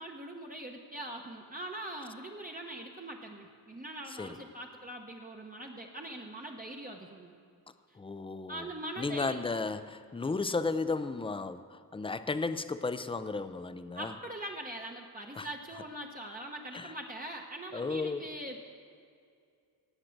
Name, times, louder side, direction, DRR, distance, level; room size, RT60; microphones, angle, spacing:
voice 1, 0.0-7.3 7.9-8.0 8.5-9.4 14.0-18.6, right 1 dB, 20° right, 0 dB, 0.9 m, -42 dB
voice 2, 8.0-8.7 9.0-14.1 15.4-15.5 16.7-16.9 17.7-18.2, left 3 dB, 15° left, 12 dB, 0.4 m, -34 dB
18.0 x 7.4 x 6.5 m, 2.3 s
wide cardioid pair, 140°, 40 cm